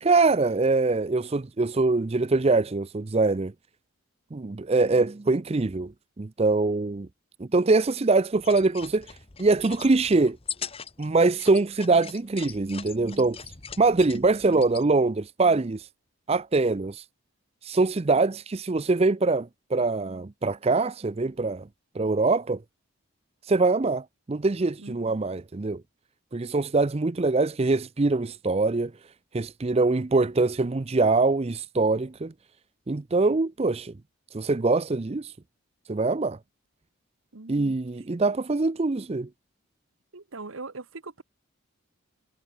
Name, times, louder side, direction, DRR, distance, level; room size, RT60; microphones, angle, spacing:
voice 1, 0.0-3.5 4.3-5.9 6.2-7.1 7.4-9.1 9.4-10.4 11.0-13.4 13.8-15.9 16.3-17.0 17.6-21.7 22.0-22.6 23.5-25.8 26.3-28.9 29.3-32.3 32.9-33.9 34.3-35.3 35.9-36.4 37.5-39.3, right 3 dB, 30° right, 0.5 m, -23 dB
sound 1, 8.3-14.9, left 8 dB, 25° left, 1.1 m, -41 dB
voice 2, 24.8-25.2 37.3-37.8 40.1-41.2, right 3 dB, 70° right, 1.2 m, -41 dB
head